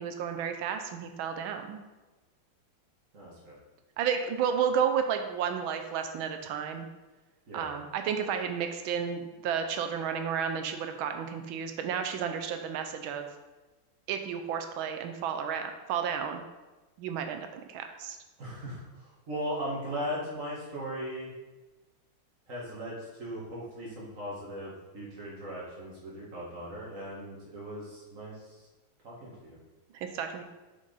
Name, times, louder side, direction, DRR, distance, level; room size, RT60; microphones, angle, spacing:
voice 1, 0.0-1.8 4.0-6.9 7.5-13.3 14.1-16.4 17.0-18.2 29.9-30.4, right 7 dB, 85° right, 6 dB, 1.5 m, -32 dB
voice 2, 3.1-3.5 7.5-7.7 18.4-21.3 22.5-28.3 29.0-29.6, equal, 40° right, -5 dB, 2.2 m, -38 dB
6.3 x 5.5 x 4.0 m, 1.2 s
omnidirectional pair, 2.2 m